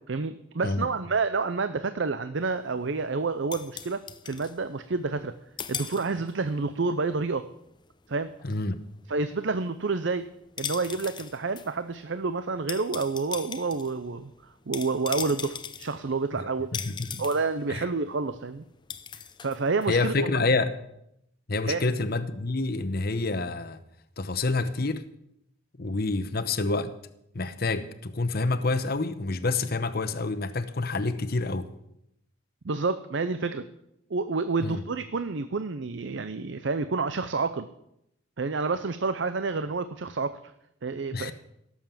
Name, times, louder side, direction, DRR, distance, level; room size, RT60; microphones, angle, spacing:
voice 1, 0.1-5.3 5.7-7.4 8.1-8.3 9.1-10.3 10.6-14.3 14.7-16.7 17.2-18.6 19.4-20.3 21.7-21.8 32.6-33.7 34.1-37.7 38.4-40.4 40.8-41.3, right 4 dB, 60° right, 0.6 m, -29 dB
sound 1, 2.4-5.3 5.6-6.5 6.8-20.2, left 7 dB, 20° left, 0.5 m, -40 dB
voice 2, 8.4-8.8 16.7-17.2 17.7-17.8 19.9-20.8 21.5-23.8 24.2-25.0 25.8-26.9 27.3-31.7 34.6-34.8 41.1-41.3, left 3 dB, 50° left, 0.9 m, -28 dB
17.0 x 7.3 x 7.4 m
head